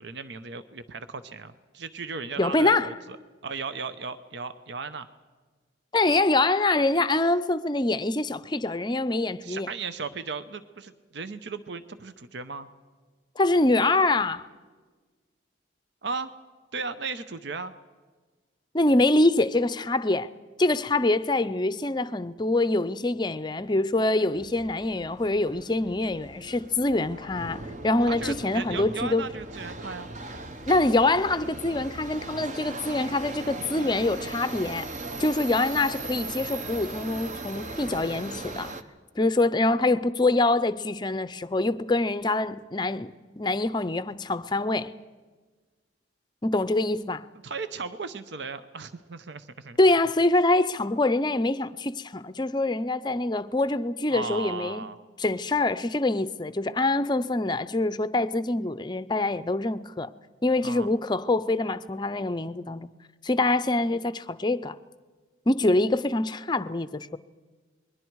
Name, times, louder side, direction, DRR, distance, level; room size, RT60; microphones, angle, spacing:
voice 1, 0.0-3.2 3.4-5.1 9.4-12.7 16.0-16.3 16.7-17.7 28.0-30.1 47.4-49.8 54.1-55.0 60.6-60.9, right 4 dB, 65° right, 0.8 m, -36 dB
voice 2, 2.4-2.9 5.9-9.7 13.4-14.5 18.7-20.3 20.6-29.3 30.7-34.9 35.2-38.7 39.2-43.1 43.4-44.9 46.4-47.2 49.8-54.8 55.2-60.1 60.4-62.9 63.2-64.8 65.5-67.2, left 2 dB, 25° left, 0.6 m, -25 dB
Subway metro underground, 24.3-38.8, right 2 dB, 40° right, 0.9 m, -38 dB
28.5 x 21.5 x 4.7 m
head